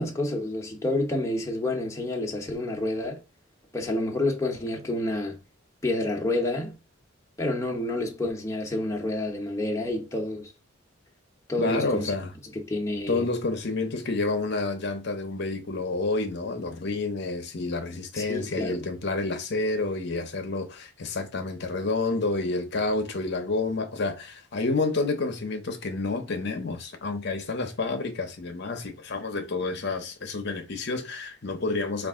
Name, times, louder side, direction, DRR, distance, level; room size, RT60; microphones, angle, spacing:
voice 1, 0.0-3.2 3.7-5.4 5.8-6.7 7.4-10.5 11.5-12.1 12.5-13.2 18.2-18.8, left 2 dB, 15° left, 0.8 m, -29 dB
voice 2, 11.6-12.3 13.1-32.1, left 3 dB, 55° left, 0.7 m, -29 dB
5.2 x 2.4 x 3.6 m
head